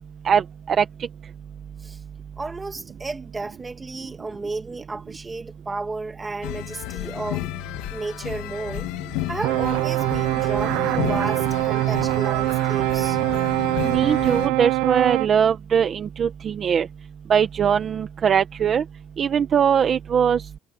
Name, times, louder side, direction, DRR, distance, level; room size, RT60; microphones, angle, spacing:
voice 1, 0.2-0.8 13.8-16.9 17.3-18.8 19.2-20.4, right 8 dB, 30° right, 1.1 m, -21 dB
voice 2, 2.4-7.4 7.9-8.9 9.3-13.2, right 3 dB, 10° right, 2.0 m, -33 dB
sound 1, 6.4-14.5, left 17 dB, 85° left, 1.3 m, -32 dB
sound 2, 9.4-15.3, right 19 dB, 85° right, 0.7 m, -23 dB
cardioid pair, 175°, 0 cm